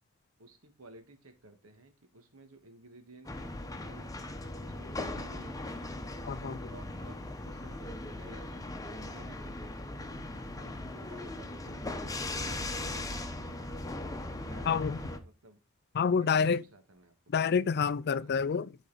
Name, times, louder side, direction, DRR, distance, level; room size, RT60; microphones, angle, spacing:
voice 1, 0.4-4.1 4.6-5.9 6.4-9.7 10.6-13.6 14.3-15.6 16.2-17.1 17.4-17.5 18.2-18.3, right 2 dB, 70° right, 1.6 m, -55 dB
sound 1, 3.2-15.2, left 2 dB, 15° left, 0.9 m, -39 dB
voice 2, 6.2-6.7 14.7-15.0 15.9-16.6 17.3-18.8, left 6 dB, 50° left, 0.4 m, -28 dB
12.0 x 4.1 x 4.1 m
head